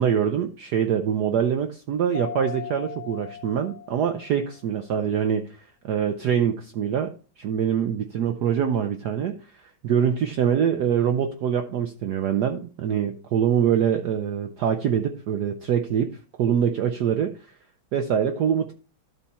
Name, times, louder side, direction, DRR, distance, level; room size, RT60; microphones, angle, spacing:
voice 1, 0.0-16.1 16.4-17.5 17.9-18.7, right 8 dB, 70° right, 7 dB, 1.0 m, -24 dB
Mallet percussion, 2.1-4.7, left 8 dB, 50° left, 0.4 m, -38 dB
12.5 x 4.3 x 4.2 m, 0.39 s
omnidirectional pair, 2.3 m